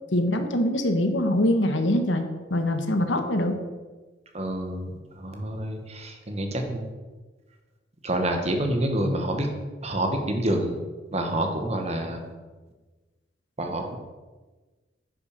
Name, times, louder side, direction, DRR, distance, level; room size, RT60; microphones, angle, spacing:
voice 1, 0.1-3.6, left 1 dB, 80° left, 7 dB, 1.3 m, -24 dB
voice 2, 4.3-4.9 5.2-6.9 8.0-9.5 9.8-10.8 11.1-12.3 13.6-14.0, right 1 dB, 35° right, 4 dB, 1.5 m, -27 dB
10.0 x 6.4 x 6.7 m, 1.3 s
head